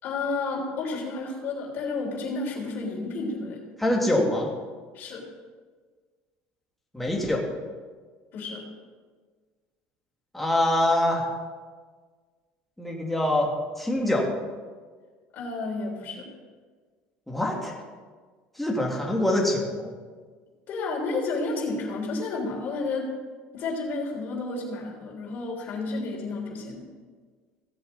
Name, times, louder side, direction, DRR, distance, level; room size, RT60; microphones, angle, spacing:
voice 1, 0.0-3.6 4.1-4.2 4.9-5.3 8.3-8.6 15.3-16.3 20.7-23.1 23.5-26.9, left 3 dB, 45° left, -1 dB, 3.5 m, -31 dB
voice 2, 3.8-4.5 6.9-7.5 10.3-11.3 12.8-14.3 17.3-17.8 18.6-19.9, left 1 dB, 5° left, -2 dB, 2.0 m, -24 dB
16.5 x 7.8 x 4.0 m, 1.5 s
cardioid pair, 145°, 4 cm